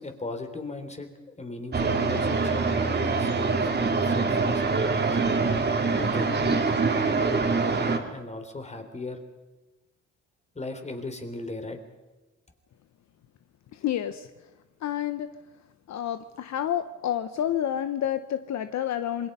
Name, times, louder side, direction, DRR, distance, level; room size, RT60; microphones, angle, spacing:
voice 1, 0.0-5.2 5.9-6.6 7.2-9.2 10.6-11.8, left 2 dB, 20° left, 7 dB, 3.5 m, -37 dB
sound 1, 1.7-8.0, right 4 dB, 35° right, 2.9 m, -24 dB
voice 2, 13.7-14.3 14.8-15.3 15.9-19.3, left 10 dB, 65° left, 10 dB, 0.9 m, -29 dB
27.0 x 22.0 x 5.5 m, 1.1 s
cardioid pair, 90°, 30 cm